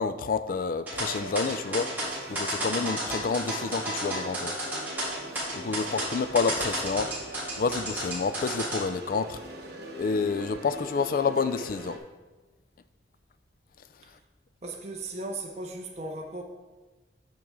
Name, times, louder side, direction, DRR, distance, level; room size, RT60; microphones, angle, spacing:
voice 1, 0.0-1.9 2.3-4.5 5.5-7.1 7.6-9.4 10.0-12.0, left 4 dB, 50° left, 0.3 m, -28 dB
sound 1, 0.9-8.8, right 1 dB, 10° right, 2.4 m, -32 dB
sound 2, 0.9-12.0, right 1 dB, 65° right, 1.0 m, -42 dB
voice 2, 14.6-16.4, right 2 dB, 35° right, 0.7 m, -36 dB
8.6 x 5.3 x 3.6 m
head